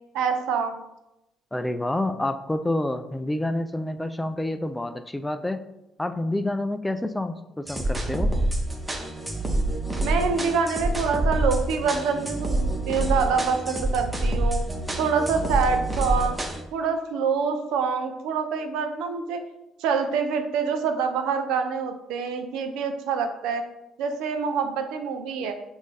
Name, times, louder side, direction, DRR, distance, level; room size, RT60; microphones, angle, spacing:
voice 1, 0.1-0.8 10.0-14.6 15.0-16.4 16.7-19.4 19.8-23.6 24.0-25.6, right 5 dB, 85° right, 7 dB, 0.5 m, -26 dB
voice 2, 1.5-5.6 6.0-8.3, left 1 dB, 10° left, 10 dB, 0.3 m, -28 dB
sound 1, 7.7-16.6, right 1 dB, 15° right, 0.8 m, -27 dB
5.3 x 2.6 x 3.2 m, 0.91 s
cardioid pair, 90°, 0 cm